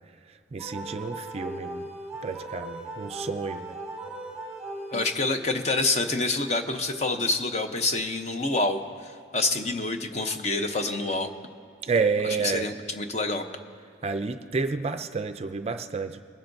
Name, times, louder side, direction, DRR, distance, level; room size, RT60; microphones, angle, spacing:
voice 1, 0.5-1.8 2.2-3.8 11.8-12.7 14.0-16.2, right 4 dB, 35° right, 8 dB, 0.4 m, -29 dB
sound 1, 0.6-5.5, right 2 dB, 5° right, 1.4 m, -38 dB
voice 2, 4.9-11.3 12.2-13.4, left 2 dB, 40° left, 6 dB, 0.7 m, -27 dB
21.5 x 11.5 x 2.6 m, 2.4 s
head